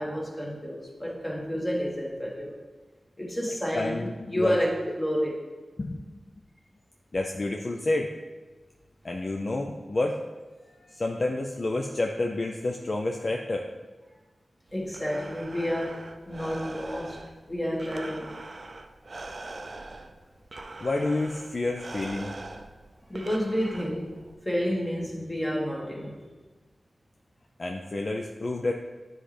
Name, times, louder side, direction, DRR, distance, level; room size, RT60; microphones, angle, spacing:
voice 1, 0.0-2.6 3.2-5.3 10.6-11.0 14.7-17.2 17.5-18.3 23.1-24.1 24.4-26.2, equal, 15° left, -3 dB, 1.4 m, -30 dB
voice 2, 3.7-4.6 5.8-6.1 7.1-8.1 9.0-10.2 10.9-13.6 20.8-22.3 27.6-28.7, left 2 dB, 45° left, 1 dB, 0.4 m, -29 dB
Breathing, 14.7-24.3, right 2 dB, 50° right, 0.4 m, -43 dB
9.1 x 3.8 x 3.3 m, 1.3 s
wide cardioid pair, 95°, 0 cm